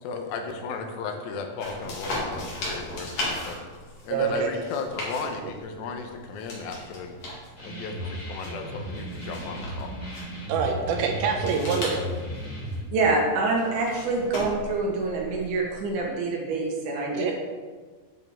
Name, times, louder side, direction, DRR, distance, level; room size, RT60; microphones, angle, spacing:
voice 1, 0.0-3.7 4.0-7.2 7.6-9.9, left 4 dB, 85° left, 4 dB, 2.5 m, -35 dB
sound 1, 1.6-16.0, left 1 dB, 50° left, 2.7 m, -38 dB
voice 2, 4.1-4.5 10.5-12.0 17.1-17.3, right 6 dB, 80° right, 3 dB, 2.7 m, -25 dB
sound 2, 7.6-12.8, right 1 dB, 25° left, 2.7 m, -35 dB
voice 3, 12.9-17.3, right 3 dB, 65° right, -1 dB, 2.2 m, -26 dB
8.3 x 7.2 x 3.4 m, 1.4 s
omnidirectional pair, 4.3 m